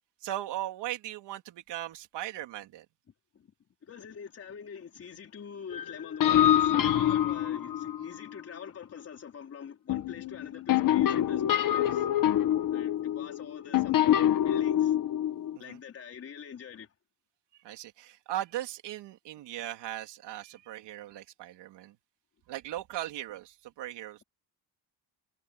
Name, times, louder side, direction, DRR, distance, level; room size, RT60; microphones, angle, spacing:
voice 1, 0.2-2.9 15.6-15.8 17.5-22.0 22.5-24.2, right 13 dB, 85° right, 3.7 m, -38 dB
voice 2, 3.8-12.1 12.7-14.2 14.4-14.9 15.6-16.9, left 7 dB, 35° left, 4.7 m, -44 dB
sound 1, 5.7-8.2 9.9-15.6, left 11 dB, 50° left, 2.1 m, -26 dB
cardioid pair, 175°, 41 cm